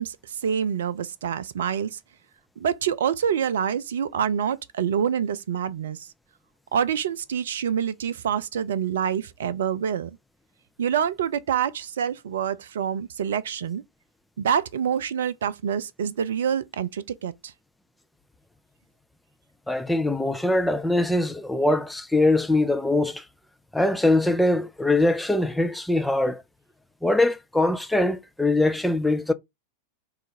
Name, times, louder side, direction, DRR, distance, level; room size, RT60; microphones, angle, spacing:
voice 1, 0.0-2.0 2.6-6.1 6.7-10.2 10.8-13.8 14.4-17.5, right 8 dB, 60° right, 0.4 m, -26 dB
voice 2, 19.7-23.2 23.7-26.4 27.0-29.3, left 2 dB, 5° left, 0.5 m, -22 dB
3.7 x 2.4 x 4.3 m
figure-of-eight pair, 90°, 0 cm